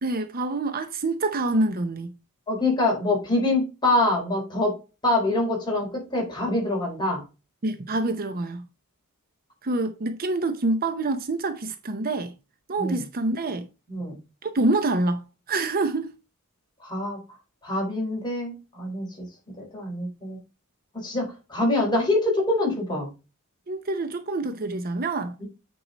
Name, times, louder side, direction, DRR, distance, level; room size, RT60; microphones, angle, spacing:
voice 1, 0.0-2.2 7.6-8.7 9.6-12.3 12.7-13.7 14.4-16.1 23.7-25.4, right 2 dB, 45° right, 0.7 m, -26 dB
voice 2, 2.5-4.8 5.0-7.2 12.8-13.0 13.9-14.2 16.8-17.2 17.6-19.3 19.6-20.4 20.9-23.1 25.4-25.5, left 2 dB, 20° left, 4.3 m, -25 dB
8.8 x 4.8 x 4.0 m
head